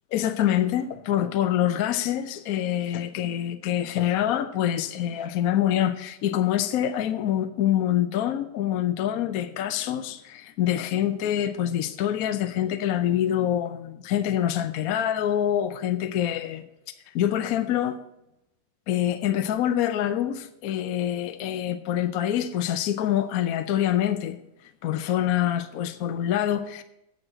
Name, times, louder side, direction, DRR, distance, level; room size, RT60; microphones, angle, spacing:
voice 1, 0.1-16.6 17.1-18.0 18.9-24.4 24.8-26.8, left 11 dB, 65° left, 1.0 m, -25 dB
8.8 x 6.3 x 7.5 m
omnidirectional pair, 1.8 m